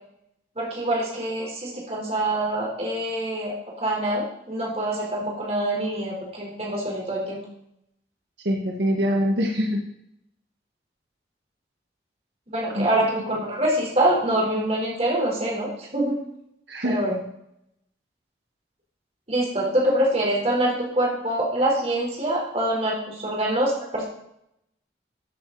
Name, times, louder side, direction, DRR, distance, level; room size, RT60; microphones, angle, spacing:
voice 1, 0.6-7.4 12.5-16.2 16.8-17.2 19.3-24.0, right 1 dB, 35° right, -3 dB, 3.7 m, -25 dB
voice 2, 8.4-9.8 12.7-13.1 13.3-13.4 16.7-17.0, equal, 80° right, 0 dB, 1.5 m, -24 dB
13.5 x 7.6 x 3.9 m, 0.77 s
head